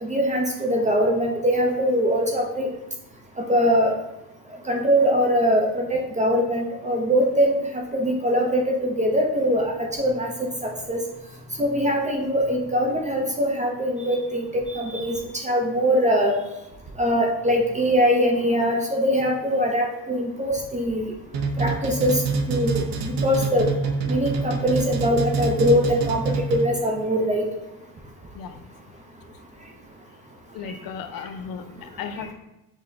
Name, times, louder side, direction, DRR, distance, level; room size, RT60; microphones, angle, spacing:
voice 1, 0.0-2.7 3.5-3.9 4.7-7.6 7.9-9.7 10.0-10.3 10.6-11.0 11.6-15.2 15.4-16.3 17.0-21.1 21.6-22.2 22.5-23.7 24.1-27.5, equal, 20° right, 1 dB, 0.5 m, -22 dB
sound 1, 21.3-26.9, right 4 dB, 65° right, 0.7 m, -26 dB
voice 2, 30.5-32.3, left 6 dB, 65° left, 8 dB, 0.5 m, -35 dB
6.2 x 2.1 x 3.8 m, 0.93 s
cardioid pair, 145°, 37 cm